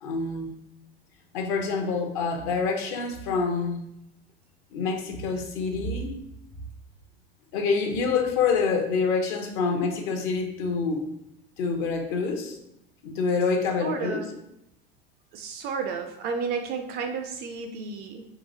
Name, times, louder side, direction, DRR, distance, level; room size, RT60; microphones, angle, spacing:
voice 1, 0.0-0.5 1.3-3.8 4.7-6.1 7.5-11.1 11.6-12.6 13.0-14.2, left 4 dB, 50° left, 4 dB, 0.7 m, -26 dB
voice 2, 13.8-14.4 15.3-18.2, right 5 dB, 35° right, 5 dB, 0.4 m, -32 dB
3.9 x 2.6 x 2.6 m, 0.81 s
figure-of-eight pair, 80°, 31 cm